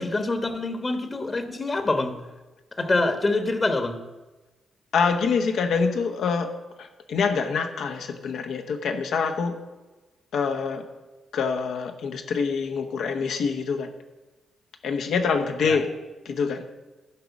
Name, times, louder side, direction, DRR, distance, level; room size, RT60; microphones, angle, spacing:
voice 1, 0.0-2.2 2.8-4.0 15.6-15.8, left 2 dB, 35° left, 8 dB, 1.2 m, -25 dB
voice 2, 4.9-6.5 6.8-9.6 10.3-10.8 11.3-13.9 14.8-15.9 16.2-16.7, left 5 dB, 75° left, 5 dB, 1.1 m, -25 dB
11.0 x 5.1 x 7.2 m, 1.1 s
supercardioid pair, 55°, 0 cm